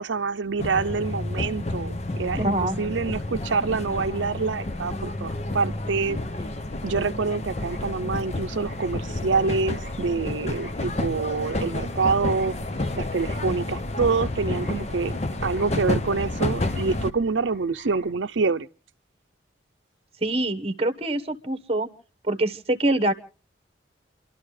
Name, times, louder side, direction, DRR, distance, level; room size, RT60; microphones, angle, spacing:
voice 1, 0.0-6.2 6.8-12.5 13.0-18.7, right 4 dB, 85° right, 0.6 m, -26 dB
sound 1, 0.6-17.1, left 2 dB, 35° left, 0.8 m, -30 dB
sound 2, 2.2-18.1, left 1 dB, 65° left, 6.0 m, -51 dB
voice 2, 2.4-2.8 20.2-21.9 22.2-23.1, right 1 dB, 30° right, 1.2 m, -24 dB
29.5 x 12.0 x 3.2 m
head